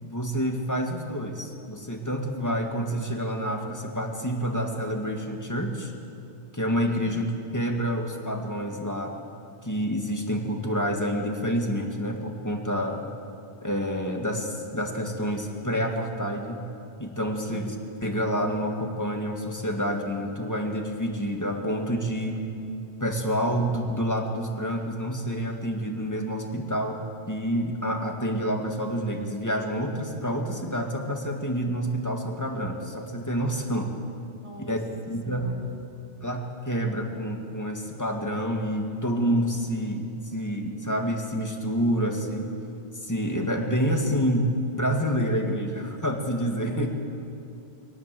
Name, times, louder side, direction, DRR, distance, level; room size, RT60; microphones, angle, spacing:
voice 1, 0.0-5.9 6.5-7.3 7.5-9.1 9.6-13.0 13.6-16.7 17.0-22.4 23.0-33.9 34.7-34.8 35.1-35.5 36.2-42.5 43.0-46.9, equal, 15° left, 2 dB, 2.1 m, -28 dB
voice 2, 6.9-7.2 17.4-17.8 34.4-35.9 46.6-46.9, right 1 dB, 30° right, 4 dB, 1.8 m, -44 dB
22.5 x 18.0 x 7.8 m, 2.6 s
omnidirectional pair, 1.1 m